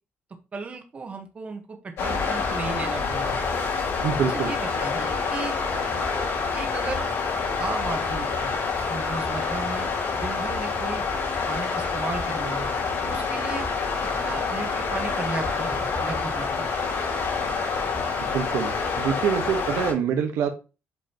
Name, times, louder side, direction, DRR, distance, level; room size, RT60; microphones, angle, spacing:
voice 1, 0.5-3.4 4.3-5.6 6.5-7.0 7.6-8.6 8.9-11.0 11.5-12.7 13.0-13.7 14.1-16.5, right 4 dB, 30° right, 4 dB, 1.2 m, -35 dB
sound 1, 2.0-19.9, left 4 dB, 80° left, 4.4 m, -27 dB
voice 2, 4.0-4.5 18.2-20.5, right 7 dB, 85° right, 5 dB, 1.2 m, -25 dB
8.3 x 5.4 x 2.9 m, 0.31 s
cardioid pair, 155°, 5 cm